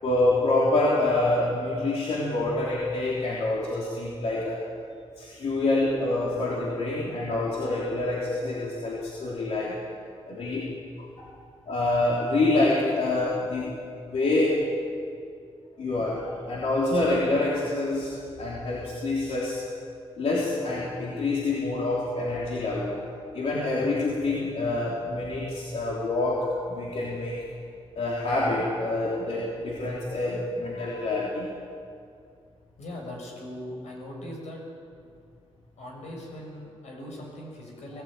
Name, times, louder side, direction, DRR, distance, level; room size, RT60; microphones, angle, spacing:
voice 1, 0.0-4.6 5.2-9.8 10.3-10.7 11.0-11.3 11.7-13.7 14.1-14.7 15.8-18.1 18.4-19.6 20.2-27.4 27.9-31.5 37.9-38.0, left 2 dB, 70° left, -4 dB, 3.4 m, -26 dB
voice 2, 32.8-34.6 35.8-38.0, left 1 dB, 85° left, -1 dB, 7.1 m, -40 dB
21.0 x 16.5 x 9.0 m, 2.4 s
wide cardioid pair, 140°, 11 cm